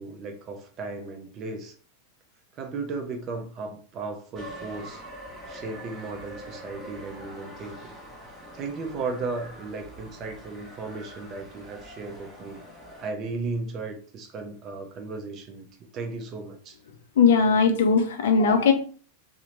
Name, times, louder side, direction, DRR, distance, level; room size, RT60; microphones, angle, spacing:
voice 1, 0.0-1.7 2.5-5.0 5.5-7.9 8.5-12.6 13.0-15.7 15.9-16.8, right 3 dB, 30° right, 4 dB, 0.5 m, -35 dB
sound 1, 4.3-13.1, equal, ahead, 0.9 m, -44 dB
voice 2, 17.2-18.7, left 5 dB, 55° left, 6 dB, 0.4 m, -19 dB
2.8 x 2.0 x 2.8 m, 0.42 s
figure-of-eight pair, 90°, 0 cm